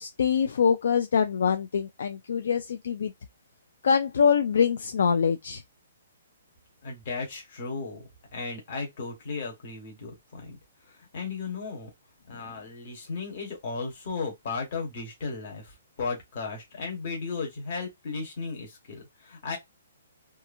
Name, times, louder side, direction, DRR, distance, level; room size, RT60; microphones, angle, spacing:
voice 1, 0.0-3.1 3.8-5.6, left 6 dB, 55° left, 0.3 m, -24 dB
voice 2, 6.8-8.0 8.3-10.6 10.9-11.9 12.3-19.6, left 4 dB, 30° left, 1.2 m, -35 dB
2.8 x 2.4 x 2.5 m
hypercardioid pair, 180°, 0 cm